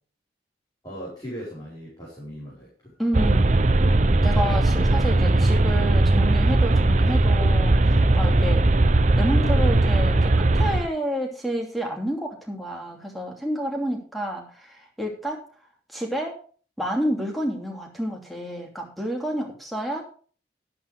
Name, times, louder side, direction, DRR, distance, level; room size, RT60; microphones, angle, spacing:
voice 1, 0.8-2.9, equal, 20° left, -6 dB, 4.9 m, -38 dB
voice 2, 3.0-3.6 4.2-8.7 9.1-15.4 15.9-16.4 16.8-20.1, equal, ahead, 0 dB, 2.8 m, -29 dB
sound 1, 3.1-10.9, right 2 dB, 40° right, 0.7 m, -19 dB
12.0 x 11.5 x 3.5 m, 0.41 s
head